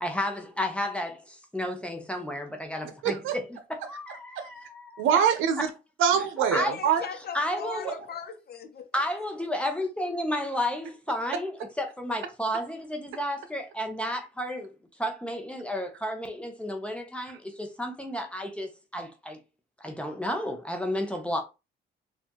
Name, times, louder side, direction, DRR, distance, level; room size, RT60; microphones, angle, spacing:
voice 1, 0.0-5.2 6.5-6.7 7.3-8.0 8.9-14.7 15.0-19.4 19.8-21.4, left 1 dB, 5° left, 0.8 m, -32 dB
voice 2, 3.0-3.3 4.4-4.5 5.0-5.7 6.0-7.0 7.8-8.0, right 8 dB, 85° right, 0.7 m, -24 dB
voice 3, 6.5-8.9, left 7 dB, 50° left, 0.9 m, -38 dB
4.2 x 2.5 x 3.0 m
cardioid pair, 90°, 20 cm